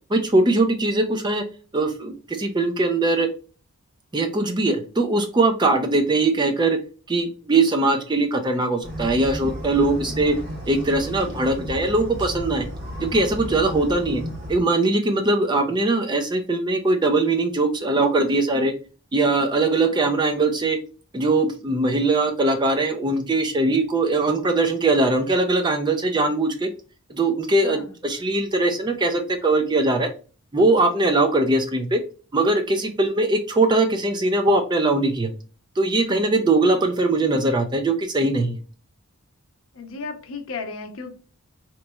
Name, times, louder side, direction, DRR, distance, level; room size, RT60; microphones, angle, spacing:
voice 1, 0.1-1.4 1.7-3.3 4.1-6.8 7.1-10.4 10.7-12.7 13.0-14.2 14.5-18.7 19.1-20.8 21.1-26.7 27.1-30.1 30.5-32.0 32.3-35.3 35.8-38.6, right 2 dB, 20° right, 5 dB, 0.4 m, -21 dB
sound 1, 8.8-14.6, equal, 55° right, 1.3 m, -33 dB
voice 2, 36.0-36.3 39.7-41.1, left 4 dB, 65° left, 4 dB, 0.7 m, -36 dB
3.9 x 3.0 x 2.2 m, 0.35 s
head